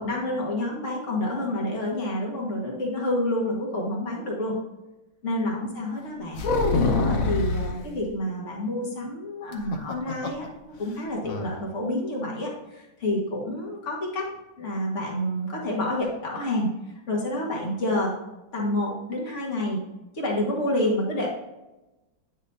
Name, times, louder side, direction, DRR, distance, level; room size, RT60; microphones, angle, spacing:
voice 1, 0.0-4.5 5.2-14.3 14.6-16.7 17.1-18.1 18.5-19.8 20.1-21.3, left 1 dB, 40° left, -3 dB, 2.0 m, -28 dB
sound 1, 6.3-7.8 9.5-10.5 10.8-10.9 11.2-11.5, left 3 dB, 55° left, 1.1 m, -25 dB
9.8 x 6.2 x 2.8 m, 1.0 s
omnidirectional pair, 2.1 m